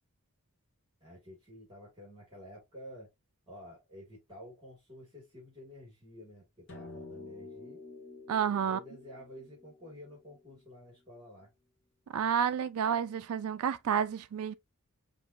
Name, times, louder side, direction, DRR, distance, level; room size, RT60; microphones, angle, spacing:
voice 1, 1.0-3.1 3.5-7.8 8.6-11.5, equal, 20° right, 2.1 m, -50 dB
sound 1, 6.7-11.2, left 3 dB, 55° left, 1.3 m, -50 dB
voice 2, 8.3-8.8 12.1-14.5, right 8 dB, 85° right, 0.4 m, -30 dB
5.2 x 2.6 x 2.6 m
head